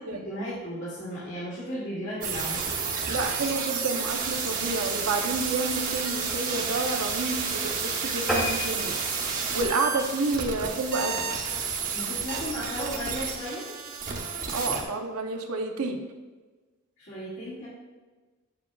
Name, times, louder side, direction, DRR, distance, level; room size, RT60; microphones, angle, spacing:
voice 1, 0.1-2.6 11.9-13.7 17.0-17.7, equal, 55° left, -10 dB, 2.3 m, -35 dB
sound 1, 2.2-14.8, right 5 dB, 40° right, 1.0 m, -31 dB
voice 2, 3.1-8.9 9.5-11.2 14.5-16.0, right 3 dB, 80° right, 4 dB, 0.7 m, -29 dB
sound 2, 8.3-11.0 11.5-11.7 12.1-12.2 12.5-12.6 12.9-13.0, left 1 dB, ahead, 1.2 m, -32 dB
7.9 x 7.3 x 2.3 m, 1.3 s
head